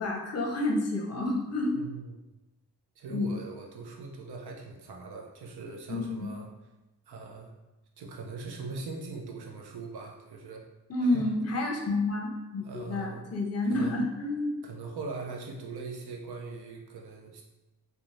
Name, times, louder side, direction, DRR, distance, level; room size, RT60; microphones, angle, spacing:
voice 1, 0.0-1.8 3.1-3.3 5.9-6.3 10.9-14.5, left 2 dB, 40° left, 0 dB, 0.6 m, -29 dB
voice 2, 1.7-2.1 3.0-6.5 7.1-7.5 8.0-10.7 11.0-11.3 12.6-13.2 13.7-14.0 14.6-17.4, right 4 dB, 75° right, 2 dB, 0.6 m, -40 dB
3.0 x 2.2 x 2.5 m, 1.0 s
cardioid pair, 60°, 40 cm